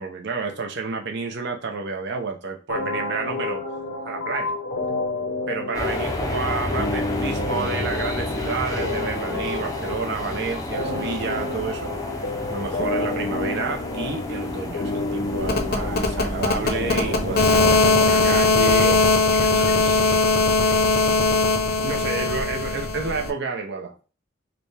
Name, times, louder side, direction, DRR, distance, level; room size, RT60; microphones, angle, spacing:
voice 1, 0.0-3.6 4.0-4.5 5.5-11.9 12.5-19.0 19.5-20.4 21.8-23.9, right 4 dB, 60° right, 4 dB, 0.7 m, -30 dB
sound 1, 2.7-18.7, left 2 dB, 85° left, 1.0 m, -30 dB
sound 2, 5.7-18.4, left 2 dB, 20° left, 0.5 m, -31 dB
sound 3, 15.4-23.3, left 3 dB, 50° left, 0.7 m, -20 dB
5.0 x 2.3 x 3.2 m, 0.34 s
head